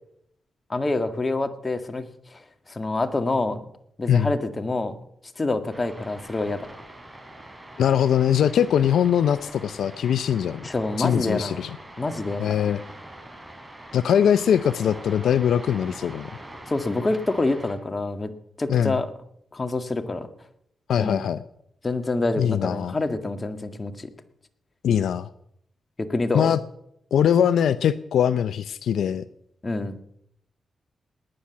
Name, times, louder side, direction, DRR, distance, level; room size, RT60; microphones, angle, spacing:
voice 1, 0.7-2.0 2.3-2.4 2.7-3.6 4.0-4.9 5.4-6.7 10.6-11.6 12.0-12.4 16.7-18.3 18.6-19.1 19.5-20.3 21.0-21.3 21.8-24.1 26.1-26.6 29.6-30.0, left 2 dB, 30° left, 9 dB, 1.9 m, -26 dB
sound 1, 5.7-17.8, right 1 dB, 15° right, 4.3 m, -43 dB
voice 2, 7.8-10.6 11.0-11.8 12.4-12.8 13.9-16.3 18.7-19.0 20.9-21.4 22.4-23.0 24.8-25.3 26.3-26.6 27.1-29.2, left 9 dB, 80° left, 15 dB, 0.5 m, -21 dB
19.0 x 9.8 x 7.2 m, 0.72 s
cardioid pair, 65°, 0 cm